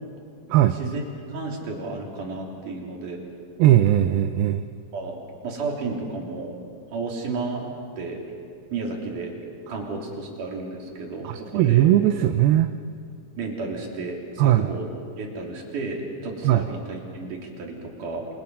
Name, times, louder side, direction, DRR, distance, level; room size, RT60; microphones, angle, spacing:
voice 1, 1.3-3.2 4.9-5.2 5.4-6.5 6.9-7.7 8.0-8.2 8.7-9.4 9.7-11.9 13.4-14.9 15.2-18.3, right 3 dB, 55° right, -1 dB, 4.7 m, -32 dB
voice 2, 3.6-4.7 11.2-12.7 14.4-14.7 16.4-16.7, right 13 dB, 80° right, 8 dB, 2.5 m, -19 dB
29.0 x 26.0 x 5.6 m, 2.3 s
omnidirectional pair, 4.4 m